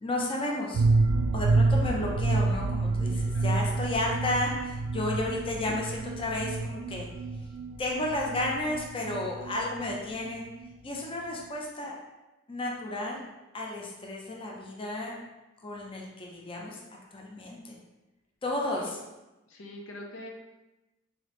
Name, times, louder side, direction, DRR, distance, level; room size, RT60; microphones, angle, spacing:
voice 1, 0.0-0.8 1.3-7.1 7.8-10.4 10.8-12.0 12.5-13.2 13.5-15.2 15.6-16.8 17.1-17.8 18.4-19.0, left 1 dB, 25° left, -1 dB, 0.6 m, -32 dB
sound 1, 0.7-10.3 10.6-10.7 11.0-11.1, right 3 dB, 80° right, 0.3 m, -28 dB
voice 2, 19.5-20.3, left 1 dB, 80° left, 1 dB, 0.6 m, -43 dB
3.7 x 3.5 x 3.1 m, 1.0 s
head